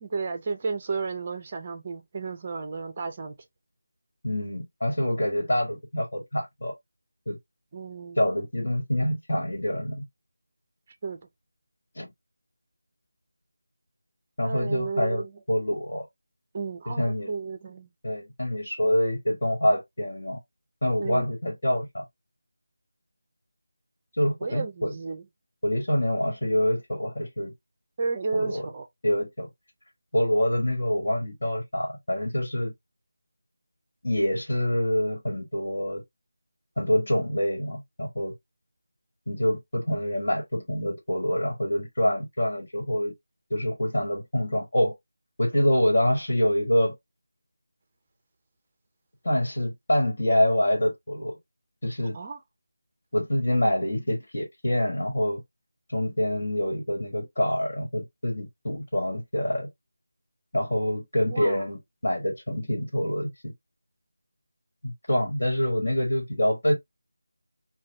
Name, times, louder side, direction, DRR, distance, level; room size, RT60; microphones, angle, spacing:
voice 1, 0.0-3.4 7.7-8.2 11.0-11.2 14.4-15.4 16.5-17.9 21.0-21.3 24.4-25.3 28.0-28.9 52.1-52.4 61.3-61.6, right 4 dB, 20° right, 0.5 m, -33 dB
voice 2, 4.2-6.7 7.3-7.4 8.2-10.0 11.9-12.1 14.4-15.2 15.5-16.0 16.8-17.3 18.0-20.4 20.8-22.0 24.2-24.9 25.6-27.5 28.3-28.7 29.0-29.5 30.1-32.7 34.0-36.0 36.8-38.3 39.3-43.1 43.5-44.9 45.4-46.9 49.2-51.4 51.8-52.2 53.1-55.4 55.9-59.7 60.5-63.5 64.8-66.7, left 1 dB, 55° left, 1.5 m, -26 dB
4.0 x 2.2 x 2.6 m
figure-of-eight pair, 175°, 0 cm